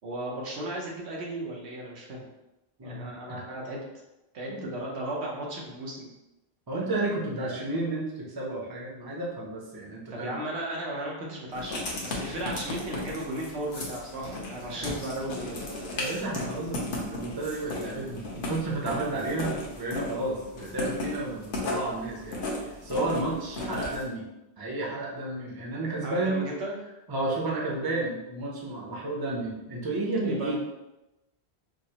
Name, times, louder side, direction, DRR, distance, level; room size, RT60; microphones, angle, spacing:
voice 1, 0.0-2.3 2.8-3.8 4.3-6.1 10.1-15.6 26.0-26.8 30.2-30.5, right 1 dB, 90° right, -3 dB, 1.2 m, -35 dB
voice 2, 2.8-3.4 4.5-4.7 6.7-10.4 14.7-14.9 15.9-24.3 24.6-26.4 27.1-30.5, right 2 dB, 25° right, -3 dB, 0.6 m, -32 dB
Writing, 11.5-24.0, left 2 dB, 60° left, 0.9 m, -36 dB
4.9 x 2.1 x 2.9 m, 0.96 s
omnidirectional pair, 1.1 m